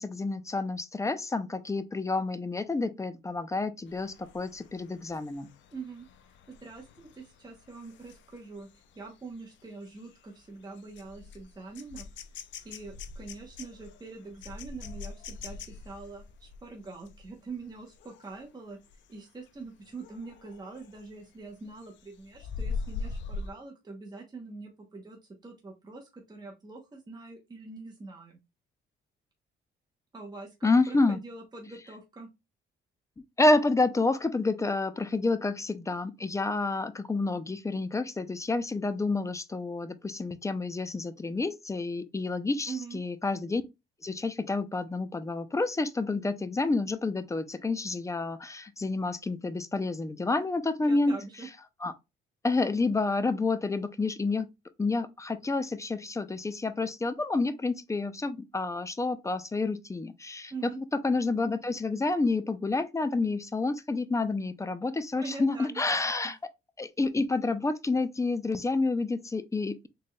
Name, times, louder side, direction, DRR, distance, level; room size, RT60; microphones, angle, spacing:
voice 1, 0.0-5.5 30.6-31.2 33.4-43.6 44.0-51.2 51.8-51.9 52.4-54.5 54.8-66.4 66.8-69.9, left 3 dB, 15° left, 0.4 m, -29 dB
sound 1, 3.9-18.4 18.8-19.1 19.5-21.1 21.5-23.5, left 4 dB, 70° left, 0.5 m, -43 dB
voice 2, 5.7-6.1 6.5-8.7 9.0-12.1 12.6-18.8 19.1-28.4 30.1-32.3 42.7-43.0 50.9-51.5 60.5-60.8 65.1-66.0, right 4 dB, 20° right, 0.9 m, -44 dB
4.0 x 3.2 x 2.2 m
cardioid pair, 90°, 20 cm